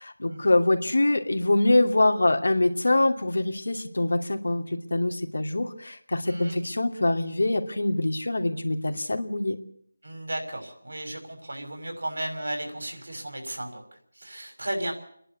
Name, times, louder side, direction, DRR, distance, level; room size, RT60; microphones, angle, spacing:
voice 1, 0.0-4.6 4.9-9.6, left 2 dB, 80° left, 5 dB, 2.6 m, -24 dB
voice 2, 6.3-6.6 10.0-14.9, right 1 dB, 80° right, 4 dB, 6.1 m, -35 dB
28.5 x 11.0 x 8.3 m, 0.65 s
figure-of-eight pair, 165°, 0 cm